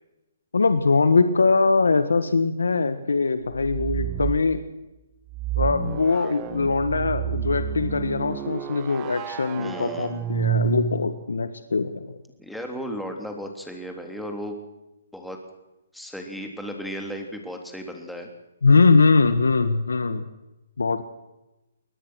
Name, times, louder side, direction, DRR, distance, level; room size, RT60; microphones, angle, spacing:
voice 1, 0.5-4.6 5.6-12.1 18.6-20.2 20.8-21.0, left 4 dB, 85° left, 11 dB, 1.5 m, -21 dB
sound 1, 3.5-4.5 5.3-11.3, right 9 dB, 25° right, 1.3 m, -29 dB
voice 2, 9.6-10.1 12.4-14.6 15.1-15.4 15.9-18.3, equal, ahead, 3 dB, 3.2 m, -35 dB
22.5 x 19.0 x 6.3 m, 0.97 s
hypercardioid pair, 145°, 0 cm